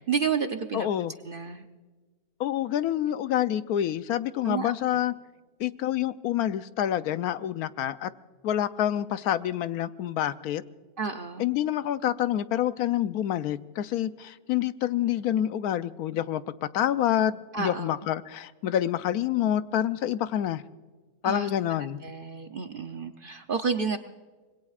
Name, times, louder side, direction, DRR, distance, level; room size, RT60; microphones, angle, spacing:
voice 1, 0.1-0.9 1.2-1.6 4.4-4.7 11.0-11.5 17.5-17.9 21.2-21.5 22.0-24.0, right 5 dB, 50° right, 0.7 m, -30 dB
voice 2, 0.7-1.1 2.4-5.1 5.6-8.1 8.4-10.6 11.4-20.6 21.2-22.0, left 11 dB, 85° left, 1.1 m, -27 dB
25.5 x 21.0 x 2.4 m
omnidirectional pair, 1.6 m